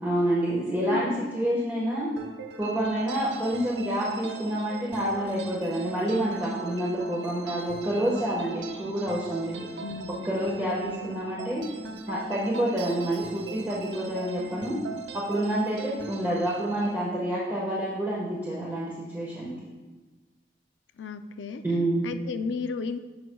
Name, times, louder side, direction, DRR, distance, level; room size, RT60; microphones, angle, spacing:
voice 1, 0.0-2.1 2.6-9.7 10.2-11.7 12.1-14.8 15.1-19.6 21.6-22.0, right 1 dB, 10° right, -7 dB, 1.3 m, -28 dB
sound 1, 2.2-16.9, right 4 dB, 80° right, 0.7 m, -40 dB
voice 2, 9.8-10.3 10.8-11.1 21.0-21.6 22.0-23.0, left 4 dB, 80° left, 9 dB, 0.4 m, -34 dB
14.5 x 6.0 x 2.3 m, 1.3 s
head